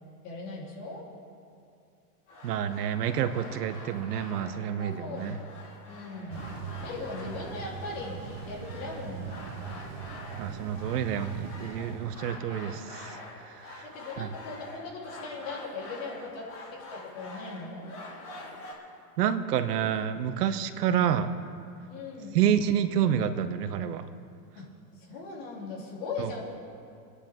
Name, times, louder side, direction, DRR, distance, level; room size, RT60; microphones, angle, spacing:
voice 1, 0.2-1.1 4.8-5.4 5.9-6.6 6.8-9.4 12.1-12.2 13.8-17.9 20.7-21.0 21.9-22.4 24.6-24.7 24.9-26.4, left 3 dB, 50° left, -3 dB, 3.6 m, -39 dB
sound 1, 2.3-18.7, left 2 dB, 25° left, 1.9 m, -46 dB
voice 2, 2.4-5.4 10.4-13.2 13.7-13.8 14.2-14.3 19.2-21.3 22.3-24.1 26.2-26.3, right 9 dB, 75° right, 10 dB, 1.0 m, -28 dB
sound 2, 6.3-12.3, right 7 dB, 30° right, 0.7 m, -41 dB
25.0 x 9.8 x 3.7 m, 2.5 s
supercardioid pair, 170°, 47 cm